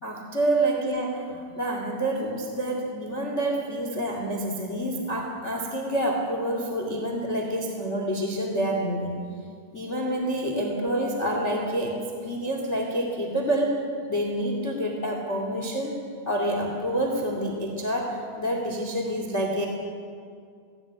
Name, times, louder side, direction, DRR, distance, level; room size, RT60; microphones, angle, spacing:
voice 1, 0.0-9.2 9.7-13.8 14.1-16.0 16.2-19.6, right 1 dB, 85° left, 2 dB, 0.6 m, -28 dB
18.5 x 16.5 x 9.0 m, 2.2 s
omnidirectional pair, 5.8 m